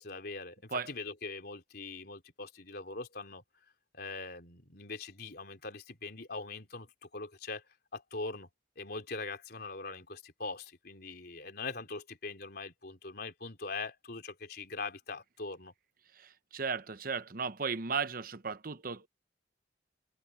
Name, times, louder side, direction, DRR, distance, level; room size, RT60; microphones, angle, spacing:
voice 1, 0.0-3.4 3.9-7.6 7.9-8.5 8.8-15.7, left 3 dB, 60° left, 4.0 m, -42 dB
voice 2, 16.1-19.1, right 5 dB, 50° right, 0.9 m, -35 dB
head